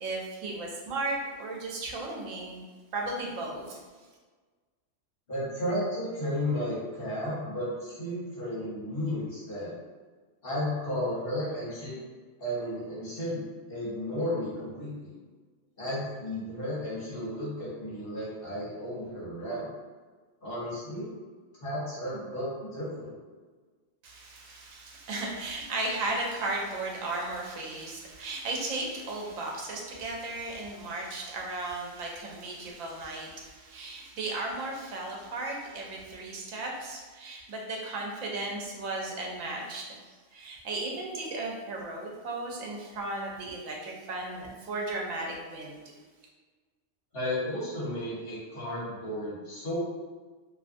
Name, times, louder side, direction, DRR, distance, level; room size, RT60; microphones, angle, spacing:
voice 1, 0.0-2.6 2.9-3.8 24.0-40.0 40.3-45.8, right 2 dB, 85° right, -1 dB, 1.0 m, -35 dB
voice 2, 5.3-9.7 10.4-12.0 12.4-15.1 15.8-19.7 20.4-21.1 21.6-23.1 47.1-49.8, left 1 dB, 50° left, -9 dB, 1.2 m, -33 dB
2.7 x 2.4 x 2.5 m, 1.4 s
omnidirectional pair, 1.3 m